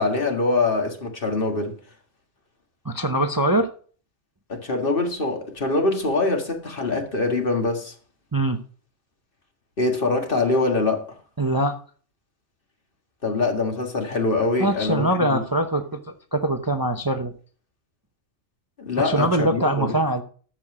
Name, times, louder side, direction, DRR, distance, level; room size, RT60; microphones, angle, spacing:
voice 1, 0.0-1.7 4.5-7.9 9.8-11.0 13.2-15.4 18.8-19.9, left 3 dB, 40° left, 1.9 m, -24 dB
voice 2, 2.8-3.7 8.3-8.6 11.4-11.7 14.6-17.3 19.0-20.2, right 1 dB, 20° right, 0.6 m, -23 dB
11.0 x 7.6 x 4.9 m
omnidirectional pair, 1.4 m